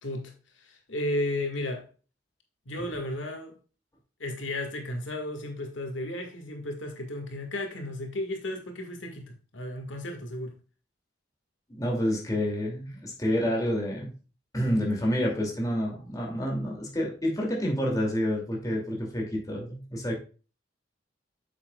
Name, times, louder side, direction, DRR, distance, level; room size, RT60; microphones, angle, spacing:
voice 1, 0.0-1.9 2.7-3.6 4.2-10.6, left 1 dB, 85° left, 1.8 m, -34 dB
voice 2, 11.7-14.1 14.5-20.1, equal, 20° left, 2.5 m, -28 dB
8.5 x 7.4 x 2.3 m
head